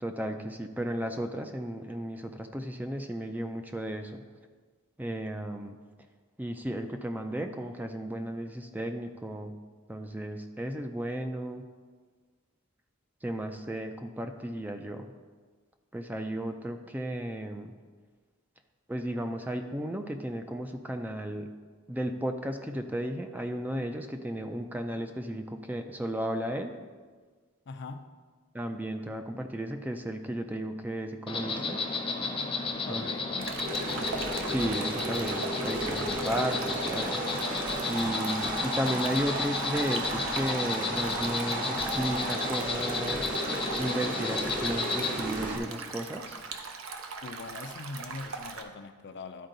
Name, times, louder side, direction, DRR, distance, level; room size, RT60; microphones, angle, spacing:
voice 1, 0.0-4.2 5.0-5.8 6.4-9.5 9.9-11.6 13.2-15.1 15.9-17.7 18.9-21.5 21.9-26.7 28.5-31.8 32.9-33.1 34.5-43.2 43.8-46.4, right 1 dB, 10° right, 6 dB, 0.4 m, -34 dB
voice 2, 27.7-28.1 32.8-33.5 47.2-49.5, left 3 dB, 55° left, 8 dB, 0.5 m, -42 dB
Insect, 31.3-45.1, left 3 dB, 25° left, 0.7 m, -33 dB
Stream, 33.4-48.6, right 4 dB, 70° right, 0.7 m, -41 dB
sound 1, 33.6-45.6, right 1 dB, 40° right, 1.0 m, -35 dB
12.0 x 4.5 x 3.9 m, 1.5 s
head